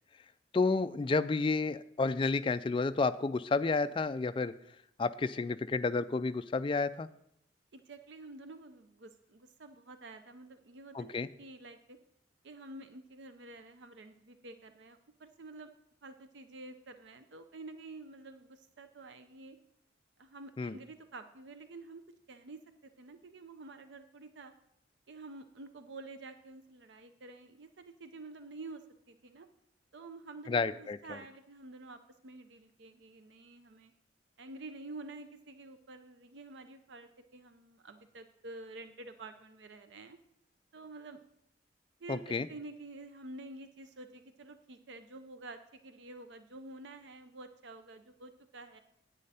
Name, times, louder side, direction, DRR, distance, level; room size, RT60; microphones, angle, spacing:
voice 1, 0.5-4.5 5.0-7.1 10.9-11.3 20.6-20.8 30.5-31.0 42.1-42.5, left 3 dB, 25° left, 12 dB, 0.3 m, -30 dB
voice 2, 7.7-12.0 12.4-15.7 16.0-19.6 20.2-22.0 22.3-24.5 25.1-29.5 29.9-33.9 34.4-40.2 40.7-41.2 42.0-48.8, right 2 dB, 70° right, 9 dB, 0.6 m, -49 dB
10.0 x 8.6 x 4.2 m, 0.77 s
head